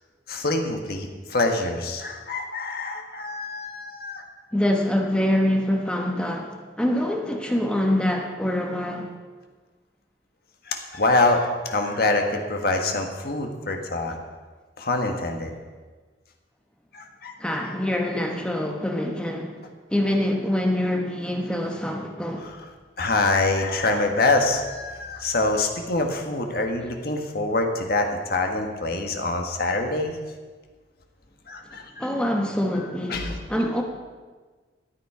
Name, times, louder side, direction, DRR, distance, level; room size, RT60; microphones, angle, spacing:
voice 1, 0.3-4.2 10.6-14.2 14.8-15.5 16.9-17.7 22.4-22.7 23.0-30.2 31.5-32.1 32.7-33.4, left 2 dB, 60° left, 3 dB, 1.5 m, -25 dB
voice 2, 4.5-9.1 17.4-19.6 19.9-22.5 32.0-33.8, left 1 dB, 5° left, 1 dB, 1.0 m, -25 dB
13.5 x 9.2 x 4.9 m, 1.4 s
head